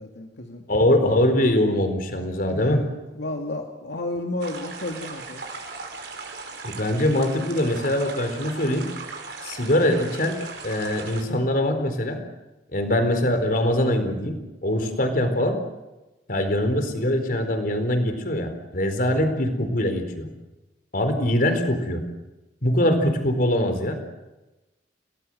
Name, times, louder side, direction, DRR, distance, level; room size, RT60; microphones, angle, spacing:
voice 1, 0.0-0.6 2.5-2.8 3.1-5.4, left 2 dB, 80° left, 2 dB, 2.4 m, -32 dB
voice 2, 0.7-2.8 6.6-8.8 9.4-10.4 10.6-12.2 12.7-15.6 16.3-20.3 20.9-22.0 22.6-24.0, left 1 dB, 55° left, 7 dB, 4.2 m, -23 dB
sound 1, 4.4-11.2, right 4 dB, 65° right, 5.5 m, -38 dB
29.5 x 19.0 x 7.9 m, 1.0 s
head